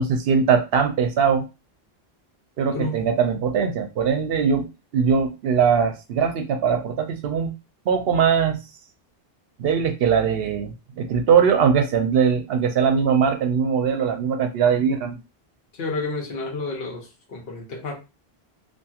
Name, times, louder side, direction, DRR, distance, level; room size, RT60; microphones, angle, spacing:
voice 1, 0.0-1.5 2.6-7.5 7.9-8.6 9.6-15.2, right 6 dB, 75° right, 6 dB, 0.8 m, -21 dB
voice 2, 2.7-3.0 15.8-18.0, left 3 dB, 70° left, 0 dB, 1.1 m, -30 dB
2.8 x 2.5 x 2.3 m, 0.28 s
omnidirectional pair, 1.0 m